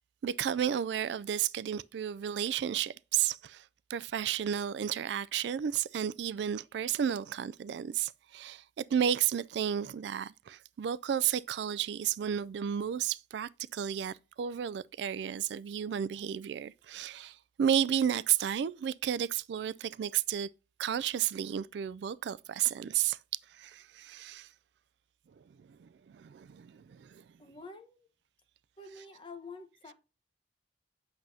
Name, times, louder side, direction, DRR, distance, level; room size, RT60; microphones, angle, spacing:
voice 1, 0.2-20.5 20.8-23.2 23.5-24.5 25.6-27.2, right 9 dB, 75° right, 0.3 m, -32 dB
voice 2, 27.4-28.1 28.8-29.9, left 3 dB, 30° left, 1.1 m, -48 dB
8.1 x 6.3 x 2.7 m
head